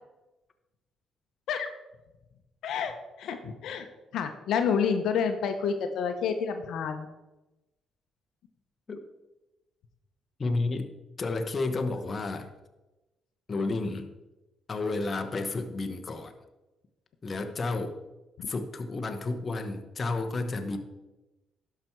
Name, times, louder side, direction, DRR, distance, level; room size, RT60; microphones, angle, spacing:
voice 1, 2.6-2.9 3.2-3.9 4.1-7.1 18.4-18.5, left 6 dB, 80° left, 6 dB, 0.9 m, -29 dB
voice 2, 10.4-10.9 11.2-12.5 13.5-14.1 14.7-16.3 17.2-18.0 18.5-20.8, left 3 dB, 35° left, 6 dB, 1.0 m, -31 dB
11.5 x 6.0 x 4.6 m, 1.0 s
cardioid pair, 90°, 0 cm